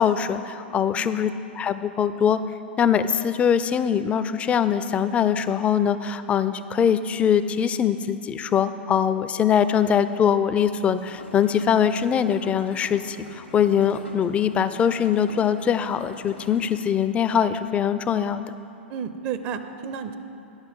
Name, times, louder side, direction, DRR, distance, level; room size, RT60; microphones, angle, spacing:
voice 1, 0.0-2.4 2.8-18.5, left 8 dB, 20° left, 12 dB, 0.4 m, -22 dB
sound 1, 11.0-16.8, left 1 dB, 85° left, 1.3 m, -44 dB
voice 2, 18.9-20.2, right 7 dB, 40° right, 10 dB, 0.5 m, -32 dB
9.6 x 5.9 x 7.4 m, 2.7 s
figure-of-eight pair, 100°, 6 cm